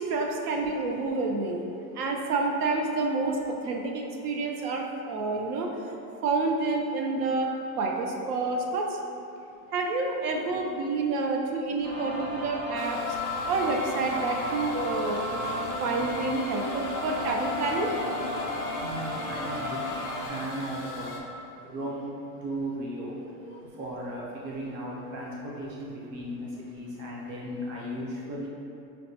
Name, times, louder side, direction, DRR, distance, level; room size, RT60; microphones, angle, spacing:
voice 1, 0.0-1.6 1.9-5.7 6.2-7.5 7.8-9.0 9.7-13.0 13.5-15.2 15.8-18.0, right 3 dB, 70° right, 1 dB, 0.6 m, -28 dB
sound 1, 11.8-20.3, left 1 dB, 50° right, 1.3 m, -33 dB
sound 2, 12.7-21.2, left 4 dB, 40° left, 0.4 m, -39 dB
voice 2, 18.8-19.9 20.3-21.3 21.6-22.2 22.4-28.5, right 1 dB, 30° right, -4 dB, 0.5 m, -36 dB
5.2 x 2.2 x 2.7 m, 2.6 s
supercardioid pair, 145°, 47 cm